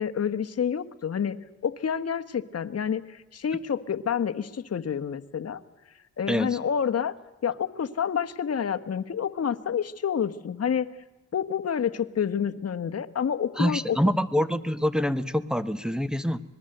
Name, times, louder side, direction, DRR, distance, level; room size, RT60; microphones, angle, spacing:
voice 1, 0.0-1.4 1.6-5.6 6.2-7.1 7.4-10.9 11.3-14.0, left 7 dB, 55° left, 10 dB, 1.3 m, -28 dB
voice 2, 6.3-6.6 13.6-16.4, equal, ahead, 14 dB, 1.2 m, -26 dB
26.0 x 20.5 x 7.9 m, 1.1 s
cardioid pair, 80°, 30 cm